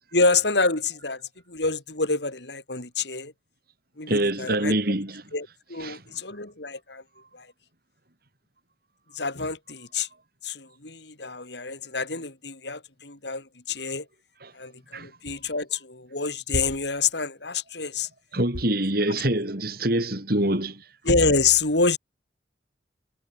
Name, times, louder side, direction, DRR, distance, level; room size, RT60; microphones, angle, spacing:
voice 1, 0.1-1.2 1.5-3.3 4.0-4.8 5.3-7.0 7.3-7.5 9.1-10.1 10.4-14.1 14.5-18.1 21.0-22.0, left 4 dB, 70° left, 4.4 m, -27 dB
voice 2, 4.1-5.2 5.8-6.0 14.4-14.5 14.9-15.1 18.3-20.8, right 1 dB, 55° right, 4.9 m, -25 dB
head